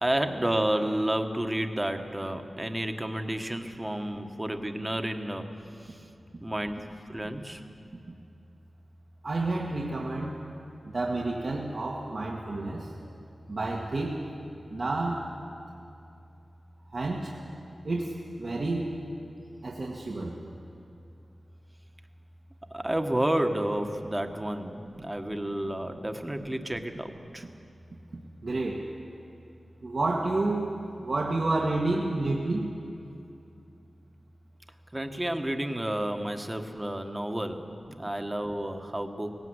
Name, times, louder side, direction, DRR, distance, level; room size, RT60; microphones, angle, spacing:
voice 1, 0.0-5.5 5.8-6.0 6.4-7.6 22.7-27.4 34.9-39.4, right 1 dB, 15° right, 6 dB, 1.4 m, -31 dB
voice 2, 9.2-10.3 10.9-12.9 13.5-14.3 14.7-15.3 16.9-17.3 17.8-19.0 19.6-20.4 28.4-28.9 29.8-32.7, right 2 dB, 60° right, -2 dB, 1.7 m, -30 dB
18.5 x 17.5 x 8.1 m, 2.7 s
wide cardioid pair, 65°, 0 cm